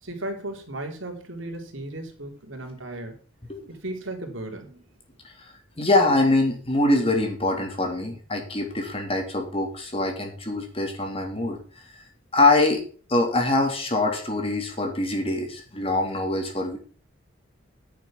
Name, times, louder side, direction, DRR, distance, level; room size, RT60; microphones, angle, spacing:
voice 1, 0.0-3.2 3.7-4.8, right 1 dB, 85° right, 3 dB, 3.5 m, -35 dB
voice 2, 5.4-11.6 12.3-12.8 13.1-16.8, left 2 dB, 30° left, 3 dB, 3.1 m, -24 dB
10.0 x 7.0 x 7.3 m, 0.41 s
head